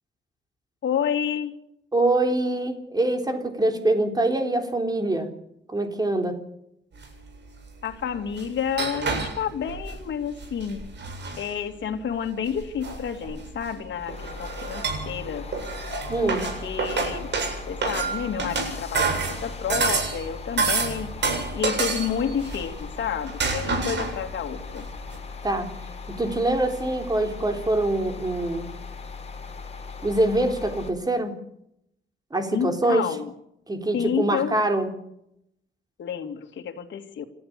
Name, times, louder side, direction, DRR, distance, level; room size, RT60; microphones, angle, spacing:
voice 1, 0.8-1.6 7.8-10.8 11.4-15.5 16.2-16.3 16.6-17.3 17.7-21.1 21.5-24.9 32.5-33.3 33.9-34.6 36.0-37.3, left 8 dB, 75° left, 4 dB, 2.6 m, -30 dB
voice 2, 1.9-5.3 5.7-6.4 16.1-16.5 25.4-25.7 26.1-28.7 30.0-31.3 32.3-33.1 33.7-34.9, right 2 dB, 20° right, 5 dB, 3.6 m, -24 dB
sound 1, 7.0-7.1 8.1-10.0 10.4-11.5 12.5-13.7 14.1-15.2 15.5-20.3 20.6-22.9 23.2-24.3 24.8-24.9 25.1-25.2, right 4 dB, 70° right, 7.8 m, -28 dB
sound 2, 13.9-30.9, left 4 dB, 35° left, 4.1 m, -39 dB
29.0 x 14.0 x 6.9 m, 0.77 s
cardioid pair, 115°, 19 cm